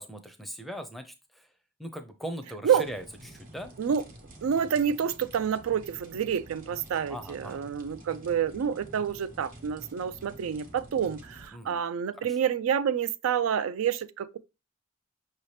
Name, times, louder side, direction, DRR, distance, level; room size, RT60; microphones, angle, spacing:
voice 1, 0.0-1.5 1.8-3.7 7.1-7.6 11.5-11.8 12.2-12.4, equal, ahead, 0.5 m, -40 dB
sound 1, 2.7-11.5, right 1 dB, 40° right, 1.0 m, -49 dB
voice 2, 4.4-14.4, right 8 dB, 85° right, 0.4 m, -28 dB
5.6 x 2.8 x 3.2 m
head